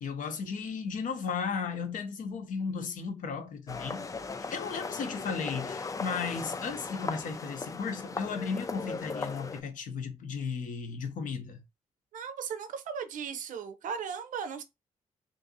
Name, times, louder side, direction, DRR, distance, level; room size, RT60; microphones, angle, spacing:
voice 1, 0.0-4.0 4.5-11.6, left 5 dB, 60° left, 0.6 m, -35 dB
sound 1, 3.7-9.6, left 4 dB, 20° left, 0.3 m, -38 dB
voice 2, 12.1-14.6, right 7 dB, 60° right, 0.5 m, -37 dB
2.6 x 2.5 x 2.6 m
hypercardioid pair, 45°, 15 cm